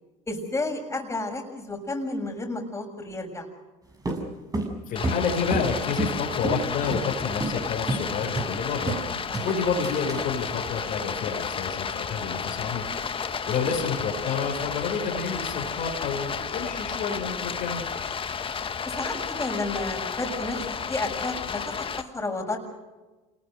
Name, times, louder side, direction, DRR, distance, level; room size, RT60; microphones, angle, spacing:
voice 1, 0.3-3.5 9.3-9.5 18.8-22.6, left 2 dB, 15° left, 1 dB, 6.9 m, -32 dB
sound 1, 4.1-6.2 6.4-6.6 6.9-7.1 7.4-7.6 7.9-8.1 8.4-9.1 9.3-10.3, right 2 dB, 20° right, 7.1 m, -29 dB
voice 2, 4.9-8.9 9.4-12.8 13.5-17.8, left 5 dB, 55° left, 1 dB, 5.3 m, -29 dB
Stream, 5.0-22.0, left 6 dB, 30° left, 1.8 m, -32 dB
27.5 x 20.0 x 6.6 m, 1.2 s
hypercardioid pair, 75°, 17 cm